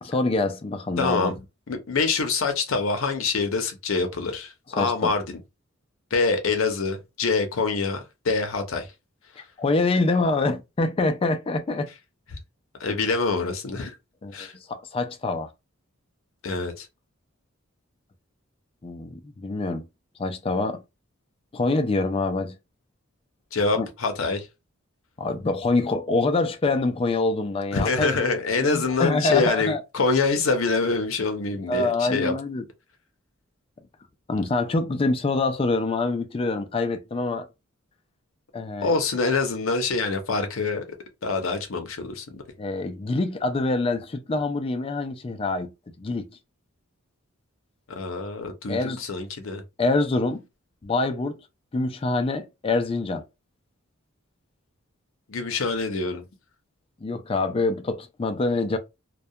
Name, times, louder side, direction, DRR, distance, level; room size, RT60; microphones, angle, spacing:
voice 1, 0.0-1.3 4.7-5.1 9.4-11.9 14.2-15.5 18.8-19.8 20.2-20.8 21.5-22.5 23.8-23.9 25.2-28.2 28.6-29.8 31.7-32.6 34.3-37.5 38.5-38.9 42.6-45.7 46.0-46.3 48.7-49.0 49.8-50.4 50.8-51.4 51.7-53.2 57.0-58.8, left 3 dB, 25° left, 0.3 m, -25 dB
voice 2, 1.0-1.3 1.7-5.4 6.1-8.9 12.3-12.4 12.8-13.9 14.3-14.5 16.4-16.9 23.5-24.5 27.7-32.3 38.8-40.8 41.2-42.4 47.9-49.6 55.3-56.2, left 4 dB, 75° left, 0.6 m, -25 dB
2.2 x 2.2 x 2.7 m
head